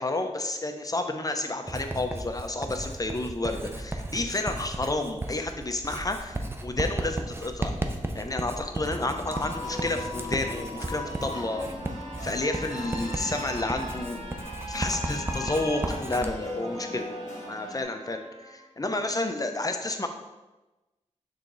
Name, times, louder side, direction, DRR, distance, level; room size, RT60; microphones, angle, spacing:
voice 1, 0.0-7.7 8.1-11.6 12.2-14.2 14.7-17.1 17.5-20.1, left 2 dB, 30° left, 5 dB, 0.7 m, -30 dB
Writing, 1.7-16.3, right 1 dB, 20° right, 0.6 m, -35 dB
sound 1, 9.0-17.8, left 1 dB, 75° left, 1.2 m, -38 dB
Trumpet, 11.2-18.7, right 2 dB, 50° right, 0.8 m, -47 dB
6.5 x 3.7 x 3.9 m, 1.1 s
wide cardioid pair, 60°, 13 cm